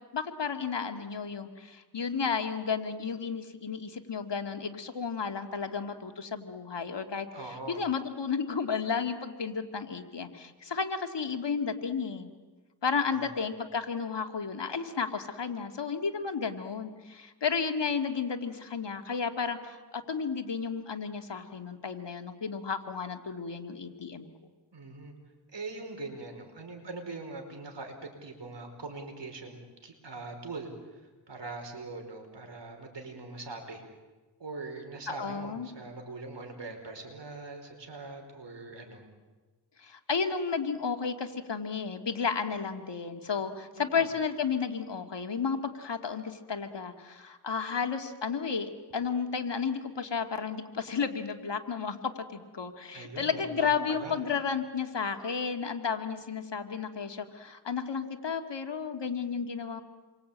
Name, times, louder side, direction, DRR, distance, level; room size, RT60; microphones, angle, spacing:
voice 1, 0.1-12.3 12.8-24.3 35.2-35.7 39.8-59.8, left 5 dB, 80° left, 6 dB, 2.2 m, -33 dB
voice 2, 7.3-7.8 13.1-13.3 24.7-25.1 25.5-33.8 34.4-39.1 43.7-44.0 52.9-54.2, right 3 dB, 80° right, 4 dB, 4.9 m, -42 dB
28.5 x 23.5 x 8.7 m, 1.3 s
wide cardioid pair, 55°, 42 cm